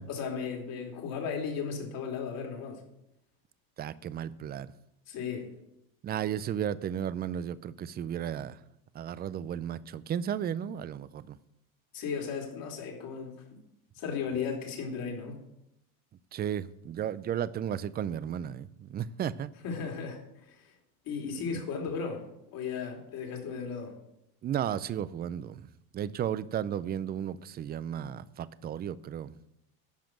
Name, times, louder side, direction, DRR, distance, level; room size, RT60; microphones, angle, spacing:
voice 1, 0.1-2.8 5.1-5.5 11.9-13.3 14.0-15.3 19.6-20.7 21.0-22.2 22.5-23.9, left 6 dB, 55° left, 3.0 m, -35 dB
voice 2, 3.8-4.7 6.0-8.6 8.9-11.4 16.3-19.5 21.5-21.6 24.4-25.7 25.9-29.3, right 9 dB, 25° right, 0.4 m, -34 dB
12.0 x 5.1 x 7.5 m
supercardioid pair, 100°, 42 cm